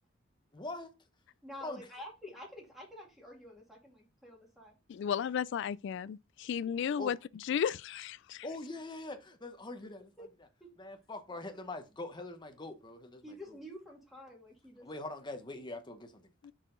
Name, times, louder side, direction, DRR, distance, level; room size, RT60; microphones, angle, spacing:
voice 1, 0.5-0.9 1.6-1.9 7.0-7.1 8.4-10.5 10.8-13.6 14.8-16.2, left 2 dB, 20° left, 1.0 m, -43 dB
voice 2, 1.4-4.7 10.2-10.3 10.6-10.7 13.2-14.9, left 1 dB, ahead, 2.2 m, -49 dB
voice 3, 4.9-7.2 7.4-8.4 16.4-16.5, left 8 dB, 60° left, 0.3 m, -34 dB
5.9 x 4.6 x 3.8 m
head